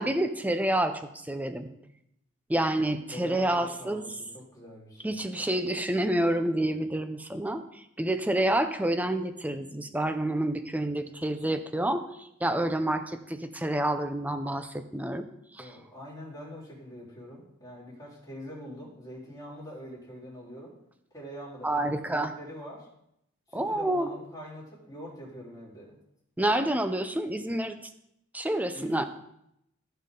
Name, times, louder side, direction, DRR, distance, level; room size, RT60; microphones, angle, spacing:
voice 1, 0.0-1.7 2.5-4.0 5.0-15.3 15.5-15.7 21.6-22.3 23.5-24.1 26.4-27.8 28.3-29.1, right 1 dB, 10° right, 9 dB, 0.6 m, -28 dB
voice 2, 3.1-5.2 15.6-20.7 21.1-22.9 23.5-26.0 28.7-29.0, equal, 20° left, -7 dB, 4.0 m, -44 dB
16.0 x 5.6 x 3.8 m, 0.79 s
head